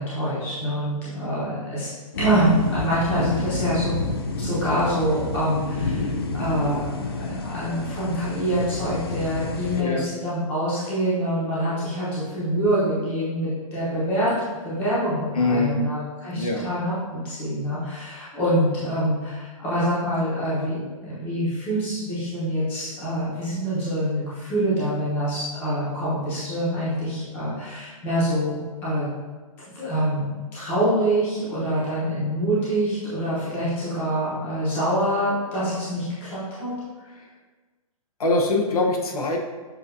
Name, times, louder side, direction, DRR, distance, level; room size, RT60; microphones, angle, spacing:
voice 1, 0.0-1.9 2.2-4.0 4.4-14.3 14.6-20.8 21.0-28.6 28.8-29.1 29.7-36.7, equal, 10° left, -10 dB, 1.0 m, -25 dB
sound 1, 2.1-9.8, left 3 dB, 45° left, 0.4 m, -29 dB
voice 2, 9.7-10.1 15.3-15.8 16.3-16.6 37.2-37.3 38.2-39.4, left 2 dB, 85° left, 1 dB, 0.9 m, -23 dB
6.9 x 2.6 x 2.7 m, 1.3 s
hypercardioid pair, 180°, 18 cm